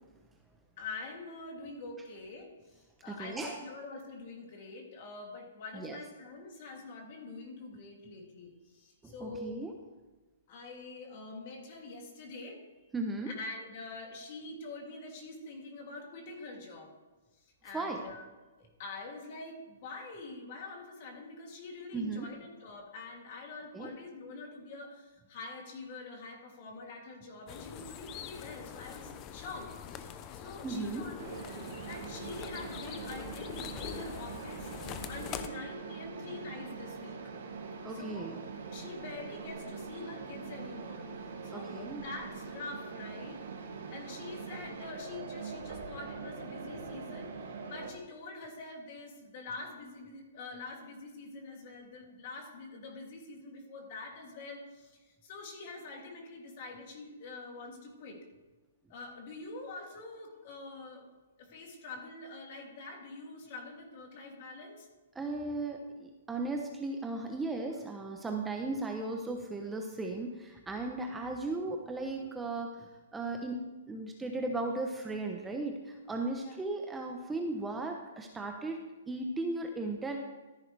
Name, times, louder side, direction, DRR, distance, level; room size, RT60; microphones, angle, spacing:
voice 1, 0.8-2.5 3.0-9.5 10.5-12.6 13.2-16.9 17.6-18.3 18.6-31.3 31.8-37.2 37.9-38.4 38.7-41.0 41.4-43.4 43.9-58.2 58.9-61.0 61.4-64.9 76.3-76.6, left 3 dB, 45° left, 1 dB, 2.9 m, -45 dB
voice 2, 3.1-3.6 5.7-6.0 9.0-9.7 12.9-13.3 17.7-18.0 21.9-22.3 23.7-23.9 30.6-31.1 37.8-38.4 41.5-42.0 65.2-73.6 73.9-78.8 79.1-80.2, right 2 dB, 10° right, 2 dB, 0.8 m, -36 dB
sound 1, 27.5-35.5, left 8 dB, 25° left, 0.7 m, -44 dB
Mechanisms, 31.2-47.9, right 4 dB, 65° right, 2.3 m, -43 dB
13.5 x 10.5 x 3.4 m, 1.2 s
hypercardioid pair, 150°, 0 cm